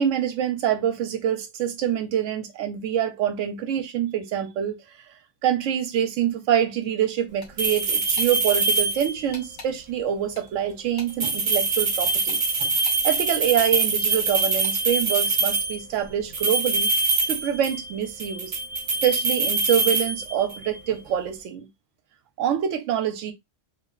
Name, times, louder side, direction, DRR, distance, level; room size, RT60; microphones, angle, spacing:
voice 1, 0.0-4.8 5.4-16.9 17.3-18.5 19.0-21.7 22.4-23.3, right 9 dB, 85° right, 0.9 m, -25 dB
sound 1, 7.4-7.8 8.2-8.3 9.3-9.7 10.3-11.4 12.3-13.0 13.6-13.7 14.4-14.8, left 3 dB, 85° left, 1.3 m, -43 dB
sound 2, 7.6-9.3 11.1-15.8 16.3-17.9 18.2-20.7, right 3 dB, 45° right, 0.4 m, -24 dB
2.6 x 2.0 x 2.3 m
omnidirectional pair, 1.3 m